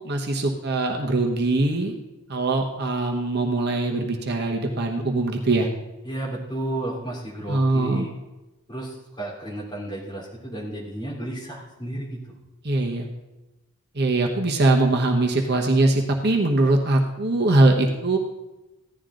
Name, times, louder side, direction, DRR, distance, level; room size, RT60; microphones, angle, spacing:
voice 1, 0.0-2.0 2.3-5.7 7.5-8.1 12.6-13.1 13.9-18.2, right 2 dB, 45° right, 1 dB, 1.1 m, -22 dB
voice 2, 6.0-8.1 8.7-12.2, right 1 dB, 20° left, -5 dB, 3.2 m, -32 dB
15.5 x 11.0 x 3.8 m, 1.0 s
head